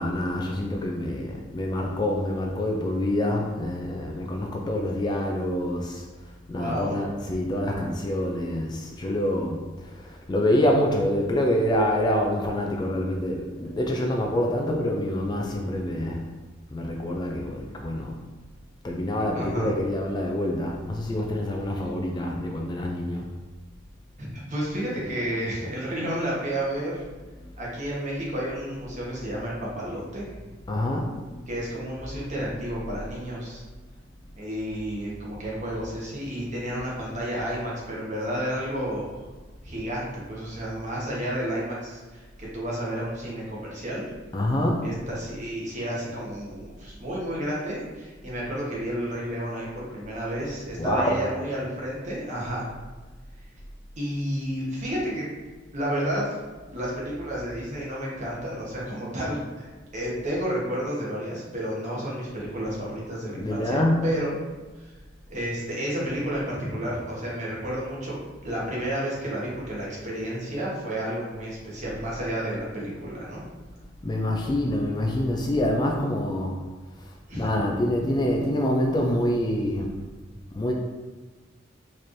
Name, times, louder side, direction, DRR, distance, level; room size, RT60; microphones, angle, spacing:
voice 1, 0.0-6.0 6.5-16.3 16.7-18.2 18.8-23.2 30.7-31.5 44.3-44.9 50.8-51.2 63.3-64.1 74.0-76.6 77.3-79.9 80.6-80.7, left 1 dB, 20° left, 1 dB, 0.3 m, -26 dB
voice 2, 6.5-7.0 19.3-19.7 24.2-27.0 27.6-30.3 31.5-33.6 34.4-39.2 39.6-44.0 44.8-52.7 54.0-55.2 55.7-56.3 56.7-64.3 65.3-68.1 68.4-73.4 77.3-77.5, equal, 40° right, -5 dB, 1.1 m, -31 dB
4.3 x 3.1 x 2.6 m, 1.3 s
head